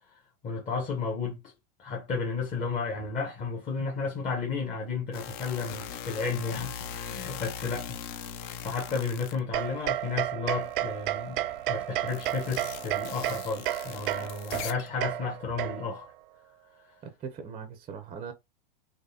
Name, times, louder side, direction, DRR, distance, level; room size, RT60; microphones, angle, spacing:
voice 1, 0.4-1.5 1.8-8.2 8.6-16.1, left 4 dB, 25° left, 1.0 m, -33 dB
sound 1, 5.1-10.1 10.5-15.0, left 8 dB, 45° left, 0.6 m, -41 dB
sound 2, 9.5-16.1, right 14 dB, 65° right, 0.4 m, -32 dB
voice 2, 17.0-18.3, right 6 dB, 20° right, 0.6 m, -40 dB
3.9 x 3.1 x 2.8 m
hypercardioid pair, 125°, 29 cm